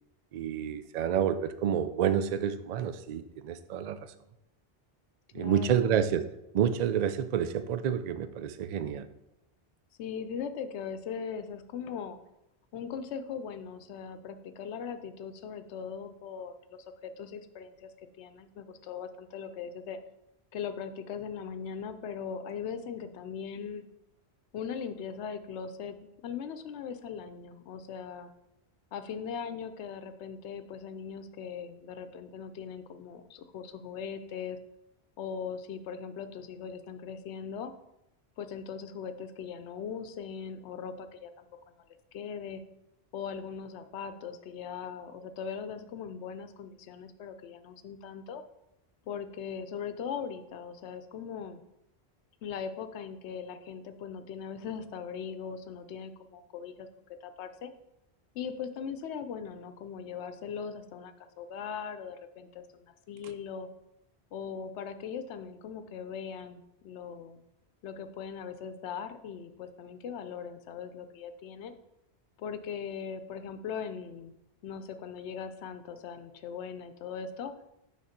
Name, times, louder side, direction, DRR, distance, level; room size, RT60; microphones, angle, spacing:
voice 1, 0.3-4.0 5.3-6.2 6.5-9.1, right 8 dB, 55° right, 11 dB, 0.4 m, -29 dB
voice 2, 5.3-6.0 10.0-12.2 12.7-17.9 18.2-20.0 20.5-23.9 24.5-28.3 28.9-34.6 35.2-37.7 38.4-41.7 42.1-42.6 43.1-48.4 49.1-51.6 52.4-56.9 57.2-57.7 58.3-63.7 64.3-67.4 67.8-71.7 72.4-74.3 74.6-77.5, left 7 dB, 85° left, 10 dB, 0.9 m, -40 dB
6.3 x 3.6 x 5.7 m, 0.85 s
omnidirectional pair, 1.1 m